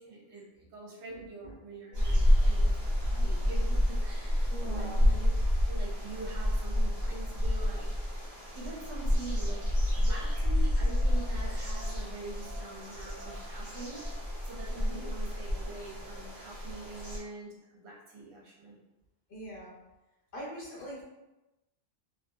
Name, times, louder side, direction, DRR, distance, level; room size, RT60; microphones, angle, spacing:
voice 1, 0.0-5.3 5.7-7.9 8.2-9.6 10.0-18.8, right 3 dB, 65° right, -4 dB, 1.0 m, -45 dB
voice 2, 1.1-1.5 4.5-5.0 14.7-15.1 19.3-19.7 20.3-21.0, equal, 50° left, -6 dB, 0.8 m, -43 dB
sound 1, 1.9-17.2, left 1 dB, 40° right, 1.1 m, -29 dB
2.7 x 2.6 x 2.2 m, 0.99 s
omnidirectional pair, 1.3 m